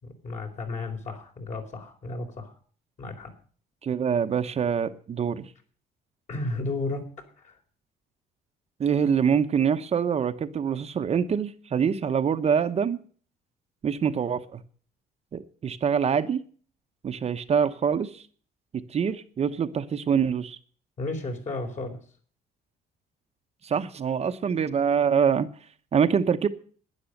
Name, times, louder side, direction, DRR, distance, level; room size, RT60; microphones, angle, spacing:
voice 1, 0.0-2.6 3.0-3.3 6.3-7.1 7.4-7.6 21.0-22.0, left 2 dB, 45° left, 4 dB, 4.2 m, -33 dB
voice 2, 3.8-5.5 8.8-13.0 13.8-14.6 15.3-16.4 17.0-18.2 18.9-20.6 23.6-25.5 25.9-26.5, right 7 dB, 40° right, 8 dB, 1.0 m, -25 dB
11.5 x 10.0 x 6.5 m, 0.43 s
cardioid pair, 110°, 17 cm